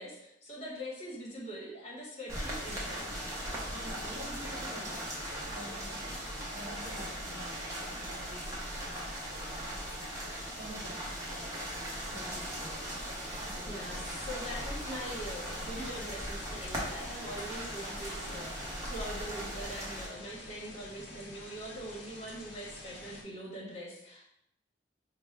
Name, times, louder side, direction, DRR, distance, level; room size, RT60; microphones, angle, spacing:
voice 1, 0.0-3.1 13.7-24.3, equal, 35° left, -6 dB, 1.2 m, -43 dB
sound 1, 2.3-20.1, equal, 15° right, 0.7 m, -39 dB
voice 2, 3.7-4.9 5.5-8.6 8.8-9.7 10.5-11.7 12.1-12.7 13.4-14.0, equal, 50° right, -2 dB, 0.9 m, -48 dB
sound 2, 14.3-23.2, left 2 dB, 55° left, 0.7 m, -49 dB
4.4 x 2.2 x 3.3 m, 0.76 s
head